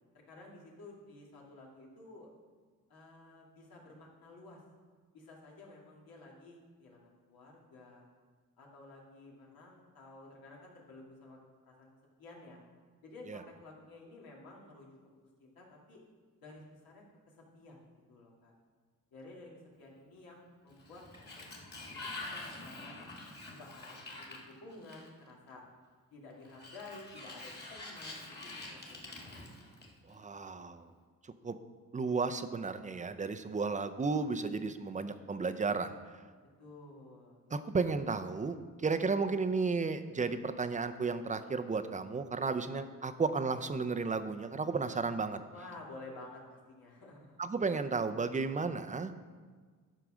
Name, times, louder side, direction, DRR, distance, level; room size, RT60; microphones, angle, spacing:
voice 1, 0.3-2.3 2.9-4.6 5.1-8.0 8.6-11.9 12.2-12.6 13.0-14.9 15.4-16.0 16.4-18.5 19.1-22.0 22.3-23.1 23.6-25.6 26.1-29.3 36.6-37.6 45.5-47.4, left 2 dB, 80° left, -3 dB, 2.4 m, -53 dB
Sliding door, 20.7-25.3 26.5-30.2, left 2 dB, 30° left, 1.9 m, -46 dB
voice 2, 30.1-30.9 31.4-31.6 31.9-36.0 37.5-45.4 47.4-49.1, right 4 dB, 20° right, 9 dB, 0.5 m, -33 dB
11.5 x 4.6 x 6.2 m, 1.5 s
cardioid pair, 105°, 35 cm